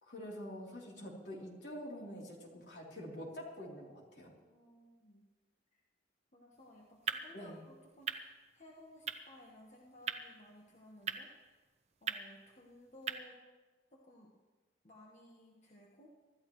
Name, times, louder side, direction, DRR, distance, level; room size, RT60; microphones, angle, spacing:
voice 1, 0.0-4.3 7.3-7.6, equal, 70° left, -3 dB, 3.5 m, -46 dB
voice 2, 4.4-5.3 5.7-5.8 6.3-11.6 12.0-13.4 13.9-14.3 14.8-16.1, left 1 dB, 40° left, -3 dB, 1.5 m, -58 dB
sound 1, 6.5-13.2, right 6 dB, 35° right, 0.8 m, -44 dB
24.5 x 13.5 x 3.2 m, 1.3 s
head